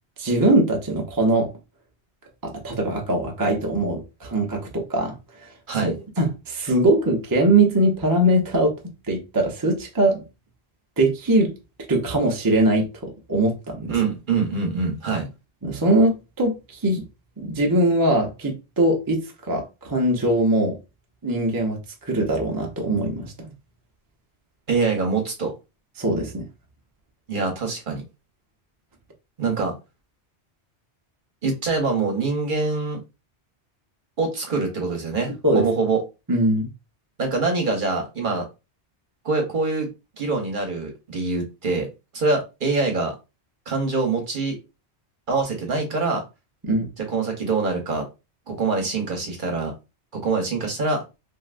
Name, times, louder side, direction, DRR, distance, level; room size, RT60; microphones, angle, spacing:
voice 1, 0.2-1.5 2.4-5.5 5.8-8.7 9.1-10.2 11.0-11.5 11.9-13.9 15.6-17.0 17.4-19.2 19.5-20.8 21.2-23.3 26.0-26.5 35.4-35.7 36.3-36.7 46.6-46.9, right 1 dB, 25° right, 0.5 m, -21 dB
voice 2, 13.9-15.3 24.7-25.5 27.3-28.0 29.4-29.7 31.4-33.0 34.2-36.0 37.2-38.5 39.2-39.9 40.2-41.9 42.1-43.2 43.7-44.6 45.3-46.2 47.0-48.0 48.5-49.7 50.1-51.0, right 3 dB, 50° right, 0.9 m, -24 dB
3.2 x 2.6 x 2.4 m
omnidirectional pair, 1.2 m